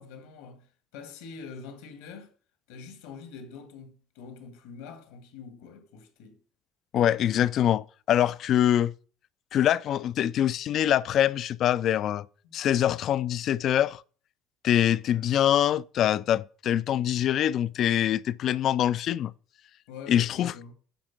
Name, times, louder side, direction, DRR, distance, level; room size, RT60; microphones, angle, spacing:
voice 1, 0.0-2.3 2.7-6.4 12.4-12.6 15.0-15.3 19.9-20.7, left 5 dB, 80° left, 1.7 m, -45 dB
voice 2, 6.9-8.9 9.5-12.3 12.5-14.0 14.6-19.3 20.1-20.5, left 11 dB, 55° left, 0.4 m, -24 dB
9.1 x 3.6 x 6.0 m
supercardioid pair, 80°, 0 cm